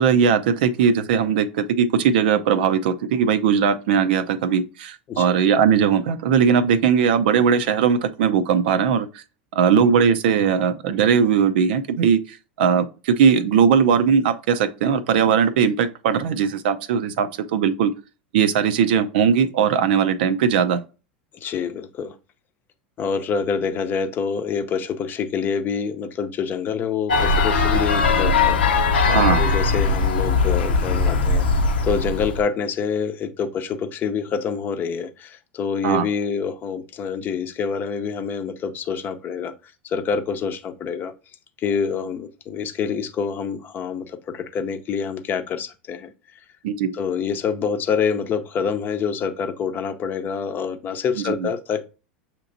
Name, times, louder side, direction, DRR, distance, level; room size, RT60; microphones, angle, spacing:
voice 1, 0.0-9.2 9.5-17.9 18.3-20.8 29.1-29.4 35.8-36.1 46.6-47.0 51.3-51.5, right 7 dB, 70° right, 0.5 m, -19 dB
voice 2, 21.4-22.1 23.0-31.4 31.8-39.5 39.8-41.1 41.6-46.1 46.9-51.8, left 6 dB, 35° left, 0.7 m, -26 dB
sound 1, 27.1-32.4, left 4 dB, 90° left, 0.8 m, -20 dB
6.6 x 2.9 x 2.6 m
hypercardioid pair, 95°, 5 cm